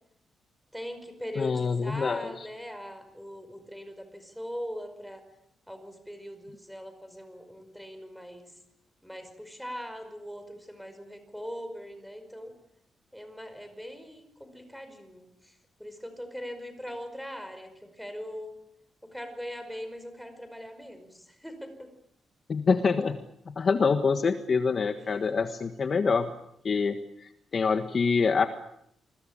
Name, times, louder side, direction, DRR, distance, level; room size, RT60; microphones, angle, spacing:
voice 1, 0.7-5.2 5.7-8.5 9.0-12.5 13.1-18.5 19.0-21.9 25.0-25.3, equal, ahead, 7 dB, 5.1 m, -41 dB
voice 2, 1.3-2.5 22.5-23.2 23.5-26.3 26.6-28.5, left 5 dB, 40° left, 8 dB, 1.5 m, -26 dB
28.0 x 21.5 x 8.8 m, 0.74 s
wide cardioid pair, 145°, 0 cm